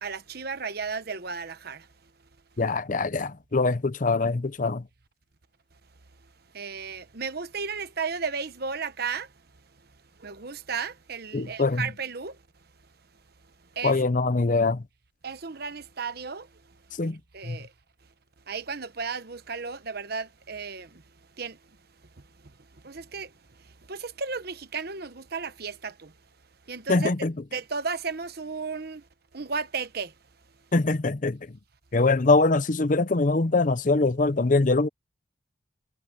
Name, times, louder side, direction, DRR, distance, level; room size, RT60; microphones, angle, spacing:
voice 1, 0.0-1.9 6.5-9.3 10.2-12.4 13.7-14.0 15.2-16.5 17.0-17.7 18.5-21.0 21.4-21.6 22.8-23.3 23.9-26.1 26.7-27.1 27.5-29.0 29.3-30.1, right 5 dB, 50° right, 1.1 m, -34 dB
voice 2, 2.6-4.8 11.3-11.9 13.8-14.8 17.0-17.2 17.5-17.6 26.9-27.3 30.7-31.4 31.9-34.9, left 3 dB, 40° left, 0.6 m, -23 dB
head